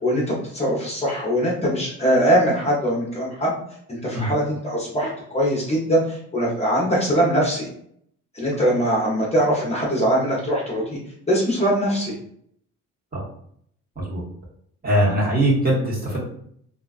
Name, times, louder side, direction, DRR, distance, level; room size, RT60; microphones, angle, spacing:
voice 1, 0.0-3.5 3.9-7.7 8.3-11.0 11.3-12.1, equal, 20° left, -4 dB, 0.7 m, -22 dB
voice 2, 14.8-16.2, right 1 dB, 30° right, -5 dB, 1.1 m, -21 dB
2.4 x 2.2 x 2.3 m, 0.67 s
cardioid pair, 90°, 30 cm